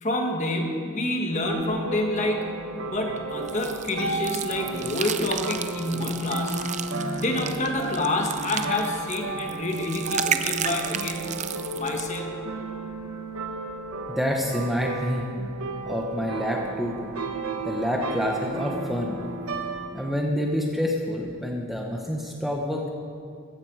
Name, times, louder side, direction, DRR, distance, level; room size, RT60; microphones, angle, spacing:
voice 1, 0.0-2.5 2.8-6.5 7.2-11.3 11.7-12.4, left 1 dB, 30° left, 2 dB, 1.5 m, -28 dB
sound 1, 1.3-19.9, right 3 dB, 85° right, 1.2 m, -34 dB
sound 2, 3.5-12.2, right 8 dB, 35° right, 0.5 m, -33 dB
voice 2, 14.1-15.3 15.9-17.1 17.6-19.2 19.9-22.9, equal, ahead, -1 dB, 1.0 m, -27 dB
15.5 x 15.0 x 4.8 m, 2.4 s
head